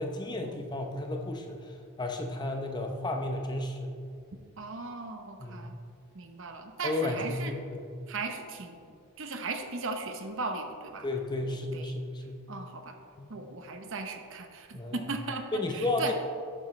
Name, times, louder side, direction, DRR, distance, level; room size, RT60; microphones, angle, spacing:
voice 1, 0.0-3.9 5.4-5.7 6.8-7.8 11.0-12.4 13.2-13.3 14.7-15.1 15.5-16.1, left 2 dB, 20° left, 3 dB, 0.7 m, -33 dB
voice 2, 4.6-5.8 6.1-7.5 8.1-8.9 9.2-11.1 11.7-11.9 12.5-13.0 13.3-16.1, right 3 dB, 60° right, 6 dB, 0.9 m, -37 dB
11.5 x 8.7 x 3.2 m, 2.4 s
head